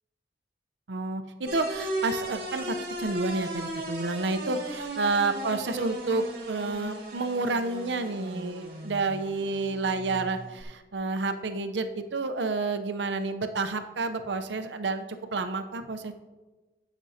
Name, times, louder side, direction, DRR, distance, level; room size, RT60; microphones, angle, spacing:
voice 1, 0.9-16.1, right 3 dB, 85° right, 8 dB, 0.7 m, -30 dB
sound 1, 1.5-10.6, right 1 dB, 60° right, 1.9 m, -37 dB
17.5 x 6.1 x 2.8 m, 1.2 s
head